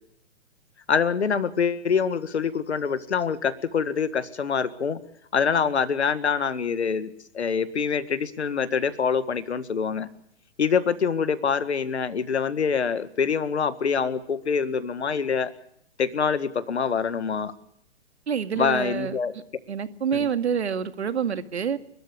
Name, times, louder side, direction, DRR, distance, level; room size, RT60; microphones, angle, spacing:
voice 1, 0.9-5.0 5.3-10.1 10.6-15.5 16.0-17.5 18.6-19.3 20.1-20.3, left 6 dB, 75° left, 1.9 m, -25 dB
voice 2, 18.3-19.2 19.7-21.8, right 7 dB, 70° right, 2.1 m, -27 dB
29.5 x 13.0 x 8.5 m
figure-of-eight pair, 120°, 34 cm